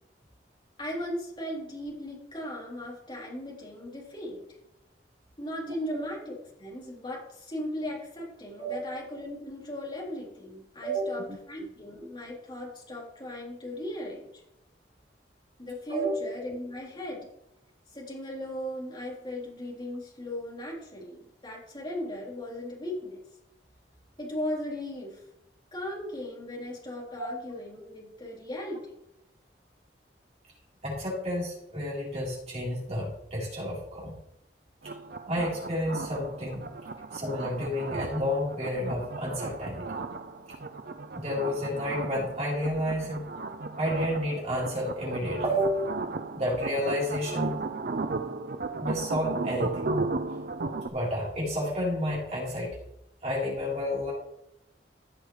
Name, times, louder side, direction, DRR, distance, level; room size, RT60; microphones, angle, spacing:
voice 1, 0.8-4.4 5.4-14.4 15.6-17.3 17.9-23.2 24.2-25.2 25.7-28.9, left 1 dB, 25° left, -4 dB, 3.8 m, -37 dB
voice 2, 30.8-34.2 35.3-36.6 37.1-39.9 41.2-43.3 43.8-45.9 46.3-47.6 48.8-49.9 50.3-50.4 50.9-52.8 53.2-54.1, equal, 40° right, -5 dB, 4.0 m, -30 dB
sound 1, 34.8-50.9, right 3 dB, 60° right, 0.6 m, -35 dB
16.0 x 6.5 x 3.3 m, 0.82 s
head